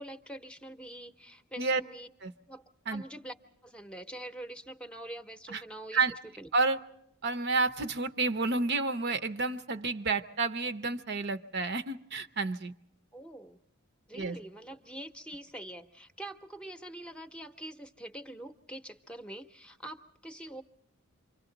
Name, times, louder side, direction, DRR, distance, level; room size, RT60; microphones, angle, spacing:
voice 1, 0.0-2.1 2.5-3.3 3.6-6.0 6.4-6.5 13.1-13.6 14.1-20.6, right 1 dB, 5° left, 6 dB, 0.8 m, -44 dB
voice 2, 7.2-12.7 14.1-14.4, right 3 dB, 50° right, 9 dB, 0.7 m, -30 dB
29.0 x 25.5 x 3.9 m, 0.79 s
head